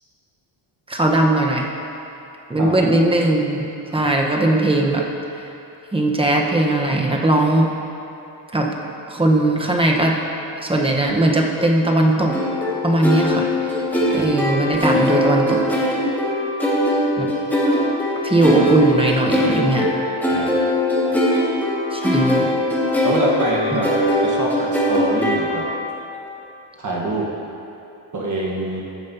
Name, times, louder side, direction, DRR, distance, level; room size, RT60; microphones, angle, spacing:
voice 1, 0.9-1.7 2.5-3.7 3.9-5.0 5.9-7.7 8.5-8.7 9.1-10.1 10.6-12.3 12.8-13.5 14.1-15.6 17.2-17.3 18.2-19.9 21.9-22.5 23.7-23.8, right 2 dB, 10° right, 0 dB, 1.0 m, -18 dB
voice 2, 2.6-2.9 3.9-4.0 14.0-14.3 20.2-20.6 21.1-21.2 23.0-23.9 24.2-25.7 26.8-27.3 28.1-28.8, right 1 dB, 40° right, -3 dB, 1.3 m, -25 dB
sound 1, 12.3-25.9, left 1 dB, 5° left, 1.8 m, -21 dB
15.0 x 7.5 x 2.8 m, 2.8 s
cardioid pair, 110°, 47 cm